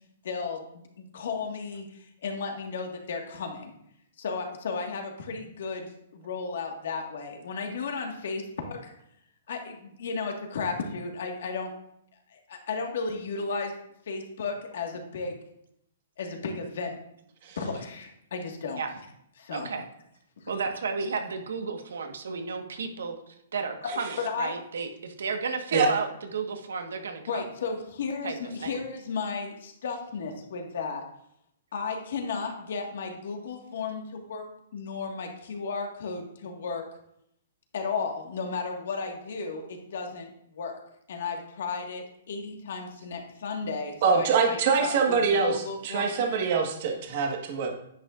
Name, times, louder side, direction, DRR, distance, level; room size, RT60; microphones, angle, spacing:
voice 1, 0.2-3.7 4.2-8.9 9.5-11.7 12.3-13.7 14.1-15.4 16.2-17.0 17.6-18.8 19.4-19.7 20.4-20.5 23.8-23.9 24.2-24.5 27.3-31.0 31.7-36.8 37.7-40.8 41.1-46.4, left 4 dB, 60° left, 3 dB, 1.6 m, -34 dB
voice 2, 19.5-19.8 20.5-27.4 28.2-28.4 28.6-28.7, right 5 dB, 90° right, 5 dB, 1.3 m, -33 dB
voice 3, 44.0-45.6 45.8-47.7, right 5 dB, 40° right, 2 dB, 1.4 m, -24 dB
10.0 x 8.6 x 2.5 m, 0.75 s
hypercardioid pair, 170°, 0 cm